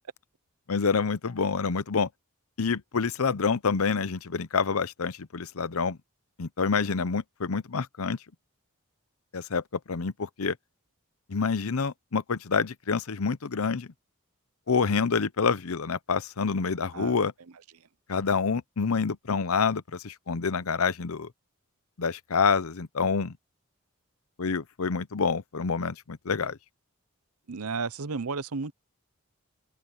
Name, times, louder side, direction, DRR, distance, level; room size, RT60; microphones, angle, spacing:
voice 1, 0.7-2.1 2.6-6.0 6.4-8.2 9.3-9.6 9.9-10.6 11.3-13.9 14.7-17.3 18.1-21.3 22.0-23.3 24.4-26.6, left 5 dB, 75° left, 0.7 m, -27 dB
voice 2, 27.5-28.7, right 4 dB, 85° right, 0.8 m, -32 dB
head